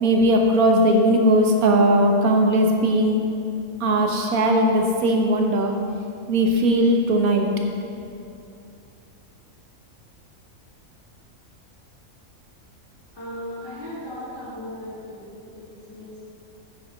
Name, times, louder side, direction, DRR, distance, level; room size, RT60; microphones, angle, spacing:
voice 1, 0.0-3.2 3.8-5.7 6.3-7.5, right 1 dB, 85° right, 2 dB, 1.5 m, -18 dB
voice 2, 13.1-16.2, left 1 dB, 40° left, -13 dB, 2.5 m, -37 dB
9.7 x 6.4 x 5.2 m, 2.6 s
omnidirectional pair, 1.5 m